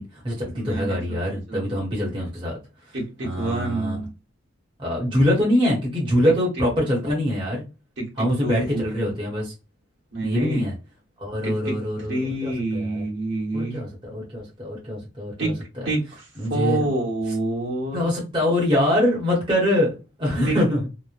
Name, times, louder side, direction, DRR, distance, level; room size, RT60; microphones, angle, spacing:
voice 1, 0.0-2.5 3.2-4.0 4.8-7.6 8.2-9.5 10.2-10.7 11.2-13.0 13.5-15.5 16.4-16.9 17.9-20.8, left 1 dB, 25° right, -4 dB, 0.9 m, -24 dB
voice 2, 0.5-1.2 1.5-1.6 2.9-4.1 6.6-6.7 8.0-9.1 10.1-10.6 11.4-13.8 15.4-15.5 15.8-18.1 20.5-20.6, right 2 dB, 55° right, -2 dB, 1.1 m, -28 dB
3.0 x 2.0 x 2.4 m, 0.29 s
head